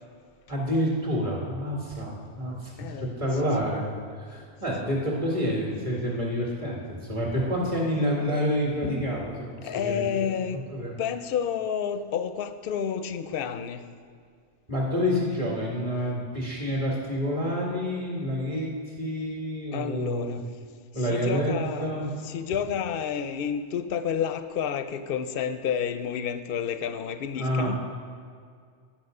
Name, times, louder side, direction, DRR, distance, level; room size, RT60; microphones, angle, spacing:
voice 1, 0.5-2.7 3.0-3.9 4.3-9.4 9.6-10.3 10.5-11.0 14.7-20.4 20.9-22.1 27.3-27.7, equal, 30° right, -4 dB, 2.1 m, -28 dB
voice 2, 2.8-3.5 4.8-4.9 9.6-10.6 11.0-13.8 19.7-20.4 21.0-27.8, left 8 dB, 60° left, 10 dB, 0.7 m, -30 dB
10.5 x 5.8 x 5.4 m, 2.1 s
omnidirectional pair, 1.2 m